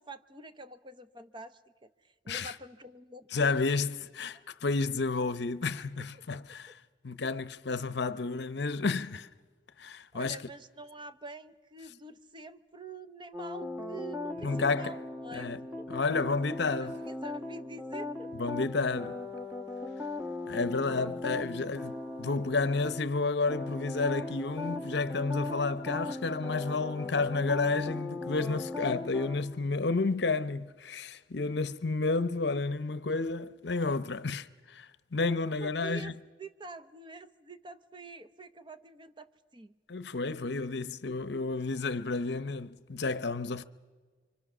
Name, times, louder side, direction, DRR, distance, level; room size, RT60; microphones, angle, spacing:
voice 1, 0.0-3.6 6.3-6.7 10.1-15.5 15.8-15.9 17.0-18.5 35.6-36.1 36.4-39.7, right 3 dB, 25° right, 0.7 m, -46 dB
voice 2, 3.3-6.8 7.0-9.3 9.8-10.4 14.4-15.0 15.3-15.6 15.9-17.0 18.3-19.2 20.5-36.1 39.9-43.6, left 3 dB, 60° left, 0.8 m, -31 dB
sound 1, 13.3-23.0 23.5-29.4, left 2 dB, 10° right, 1.4 m, -38 dB
27.0 x 25.0 x 6.2 m
head